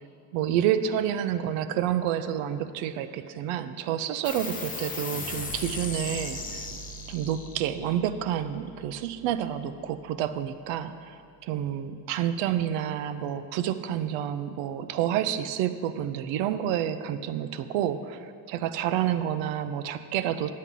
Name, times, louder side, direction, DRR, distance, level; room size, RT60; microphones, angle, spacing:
voice 1, 0.3-6.7 7.1-20.5, right 10 dB, 80° right, 12 dB, 0.6 m, -29 dB
sound 1, 4.2-11.1, left 3 dB, 20° left, 0.7 m, -39 dB
9.6 x 7.4 x 3.8 m, 2.3 s
cardioid pair, 120°, 44 cm